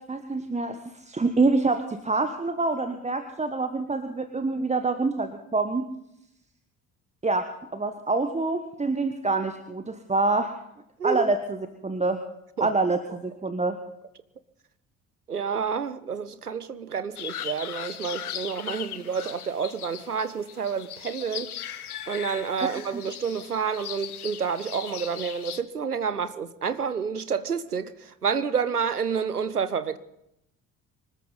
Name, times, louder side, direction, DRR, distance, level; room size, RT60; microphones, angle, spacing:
voice 1, 0.1-5.8 7.2-7.5 7.7-10.5 11.0-11.6 11.8-12.2 12.6-13.8 22.9-23.0, right 3 dB, 15° right, 1.2 m, -26 dB
voice 2, 15.3-21.5 22.1-30.0, right 6 dB, 90° right, 0.7 m, -29 dB
sound 1, 17.2-25.6, left 10 dB, 80° left, 0.8 m, -38 dB
25.0 x 13.5 x 4.1 m
figure-of-eight pair, 50°, 44 cm